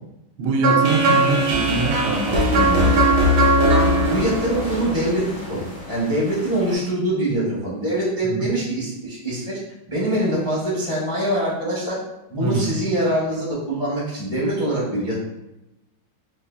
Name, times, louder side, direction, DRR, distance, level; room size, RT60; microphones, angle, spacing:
voice 1, 0.4-2.9 8.2-8.5 12.4-12.8, right 3 dB, 90° right, 3 dB, 1.5 m, -23 dB
sound 1, 0.6-5.6, right 1 dB, 70° right, 1.2 m, -19 dB
sound 2, 0.8-6.8, left 2 dB, 90° left, 2.4 m, -36 dB
voice 2, 4.1-9.6 9.9-12.0 12.3-15.2, right 1 dB, 40° left, -8 dB, 0.4 m, -24 dB
4.7 x 2.4 x 2.3 m, 0.91 s
omnidirectional pair, 2.3 m